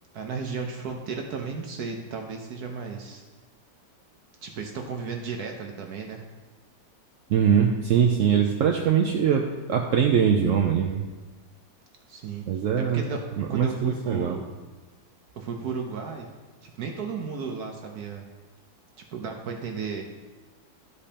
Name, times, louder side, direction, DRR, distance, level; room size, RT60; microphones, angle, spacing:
voice 1, 0.1-3.2 4.4-6.2 12.1-12.5 12.8-13.2 13.5-14.4 15.3-16.3 16.6-18.2 19.1-20.0, right 5 dB, 65° right, 2 dB, 1.1 m, -34 dB
voice 2, 7.3-11.0 12.5-13.0 13.4-14.4, right 7 dB, 85° right, 2 dB, 0.7 m, -22 dB
12.5 x 5.1 x 2.8 m, 1.3 s
omnidirectional pair, 1.9 m